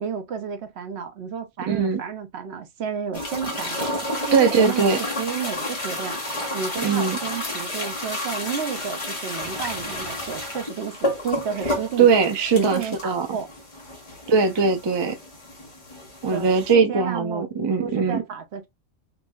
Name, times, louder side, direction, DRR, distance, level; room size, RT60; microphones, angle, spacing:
voice 1, 0.0-3.9 4.3-6.2 6.5-12.1 12.5-13.5 16.3-17.5 17.8-18.7, right 7 dB, 65° right, 0.9 m, -31 dB
voice 2, 1.7-2.0 4.3-5.0 6.8-7.2 12.0-13.4 14.3-15.2 16.2-18.2, right 5 dB, 45° right, 0.3 m, -20 dB
sound 1, 3.1-16.7, left 1 dB, 30° left, 0.9 m, -31 dB
3.1 x 2.6 x 2.2 m
omnidirectional pair, 1.3 m